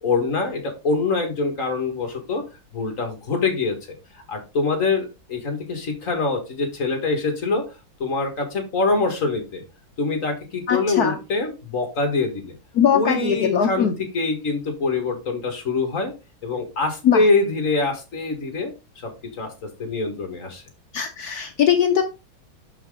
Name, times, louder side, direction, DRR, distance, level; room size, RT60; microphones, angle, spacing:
voice 1, 0.0-2.4 2.7-3.8 4.1-7.6 8.0-9.6 10.0-12.5 12.9-16.1 16.4-18.7 19.0-19.1 19.4-19.5 19.8-20.6, left 3 dB, 45° left, 4 dB, 1.8 m, -24 dB
voice 2, 10.7-11.2 12.7-13.9 17.0-17.2 20.9-22.0, left 8 dB, 65° left, 5 dB, 1.1 m, -20 dB
6.5 x 5.8 x 3.6 m, 0.28 s
omnidirectional pair, 2.1 m